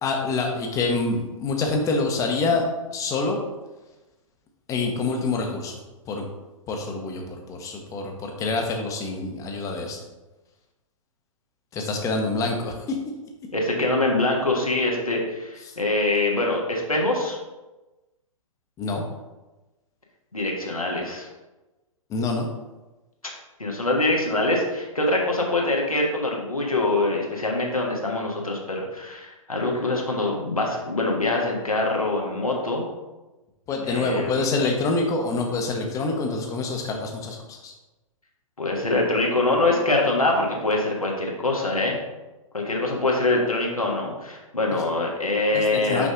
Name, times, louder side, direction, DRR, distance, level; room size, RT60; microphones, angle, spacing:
voice 1, 0.0-2.6 2.9-3.4 4.7-5.8 6.1-6.2 6.7-10.0 11.7-13.0 18.8-19.0 22.1-22.5 33.7-37.7 45.5-46.1, left 3 dB, 20° left, 3 dB, 0.8 m, -26 dB
voice 2, 13.5-17.4 20.3-21.3 23.6-32.8 33.8-34.4 38.6-42.0 42.5-46.1, left 2 dB, 85° left, -1 dB, 1.5 m, -24 dB
5.9 x 5.2 x 3.7 m, 1.1 s
figure-of-eight pair, 115°, 18 cm